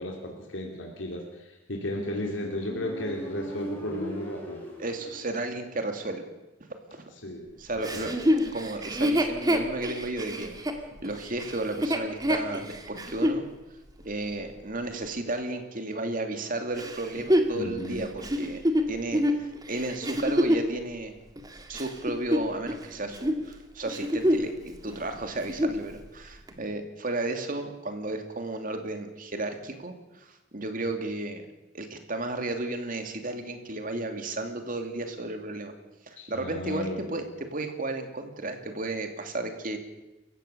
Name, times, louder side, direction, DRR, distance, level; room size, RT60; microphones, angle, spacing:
voice 1, 0.0-4.6 7.2-8.1 17.5-18.1 36.2-37.0, left 1 dB, 85° left, 0 dB, 2.9 m, -34 dB
Motorcycle, 1.9-5.6, equal, 10° left, 7.9 m, -40 dB
voice 2, 4.8-6.2 6.6-7.1 7.6-8.1 8.5-10.6 11.0-13.4 14.0-18.6 18.9-21.1 21.7-31.4 31.7-35.7 36.1-39.8, right 2 dB, 45° right, 5 dB, 2.7 m, -33 dB
Chuckle chortle, 7.8-13.4 14.0-14.1 16.8-20.7 21.4-22.8 23.1-23.4 23.8-24.6 24.9-25.0 25.4-25.8 26.5-26.6, equal, 20° right, 2.1 m, -26 dB
28.5 x 15.5 x 6.9 m, 1.0 s
head